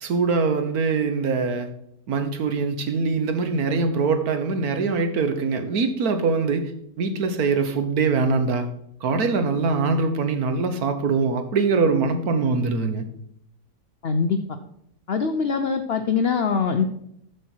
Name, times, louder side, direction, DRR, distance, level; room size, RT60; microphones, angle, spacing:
voice 1, 0.0-1.7 2.1-6.7 7.0-8.7 9.0-13.0, right 4 dB, 60° right, 8 dB, 1.4 m, -23 dB
voice 2, 14.0-14.4 15.1-16.8, left 5 dB, 70° left, 7 dB, 0.5 m, -23 dB
8.0 x 6.7 x 4.5 m, 0.72 s
omnidirectional pair, 1.9 m